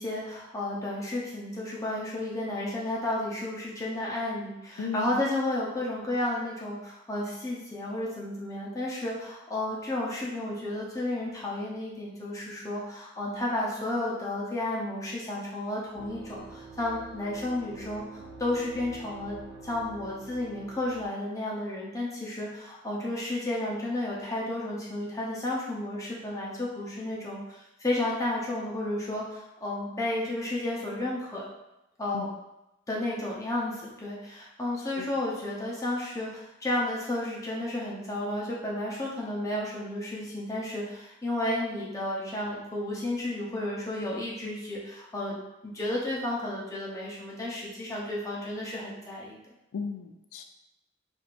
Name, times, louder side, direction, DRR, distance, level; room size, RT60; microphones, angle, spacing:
voice 1, 0.0-19.4 19.6-31.5 32.0-32.3 32.9-45.4 45.7-49.4, left 1 dB, 15° left, -5 dB, 0.7 m, -32 dB
voice 2, 4.8-5.2 32.1-32.3 35.0-35.1 49.7-50.4, left 5 dB, 90° left, 5 dB, 0.4 m, -35 dB
sound 1, 16.0-21.1, right 3 dB, 50° right, 0.7 m, -46 dB
4.6 x 2.7 x 2.5 m, 0.92 s
head